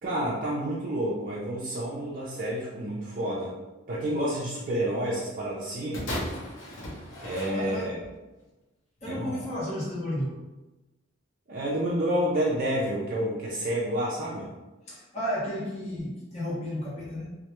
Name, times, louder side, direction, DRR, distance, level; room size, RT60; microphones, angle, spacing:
voice 1, 0.0-3.5 3.9-6.1 7.2-8.0 9.1-9.4 11.5-14.5, right 1 dB, 45° right, -6 dB, 0.4 m, -29 dB
sound 1, 5.9-8.2 9.0-9.1, left 1 dB, 85° left, 0.7 m, -36 dB
voice 2, 7.5-8.0 9.0-10.4 14.9-17.3, equal, 35° left, -8 dB, 0.7 m, -33 dB
2.1 x 2.1 x 2.9 m, 1.1 s
head